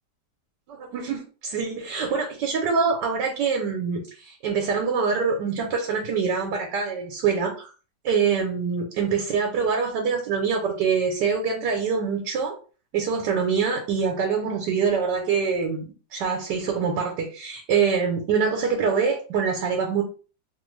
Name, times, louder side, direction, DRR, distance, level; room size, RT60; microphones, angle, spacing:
voice 1, 0.7-7.7 8.0-12.5 12.9-20.0, right 5 dB, 75° right, 1 dB, 1.3 m, -25 dB
3.0 x 2.6 x 3.1 m, 0.37 s
omnidirectional pair, 1.9 m